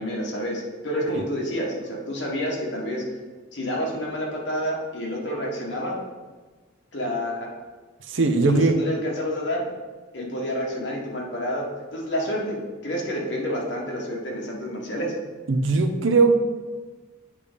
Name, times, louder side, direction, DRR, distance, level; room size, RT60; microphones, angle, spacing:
voice 1, 0.0-3.0 3.5-6.0 6.9-7.3 8.4-9.7 10.1-15.1, equal, 60° left, -2 dB, 1.5 m, -29 dB
voice 2, 8.1-8.7 15.5-16.3, right 3 dB, 70° right, 6 dB, 0.7 m, -19 dB
8.3 x 3.4 x 5.1 m, 1.4 s
head